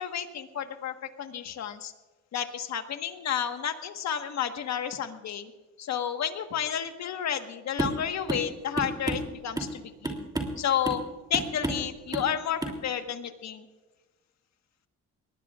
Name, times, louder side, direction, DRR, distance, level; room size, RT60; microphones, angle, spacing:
voice 1, 0.0-1.9 2.3-5.5 5.8-10.3 10.6-11.0 11.3-13.6, left 9 dB, 65° left, 7 dB, 1.4 m, -31 dB
sound 1, 7.8-8.0 8.3-8.5 8.8-9.8 10.0-10.6 10.8-11.1 11.3-11.9 12.1-12.3 12.6-12.8, right 2 dB, 15° right, 2.9 m, -31 dB
22.5 x 19.5 x 2.5 m, 1.2 s
cardioid pair, 90°, 30 cm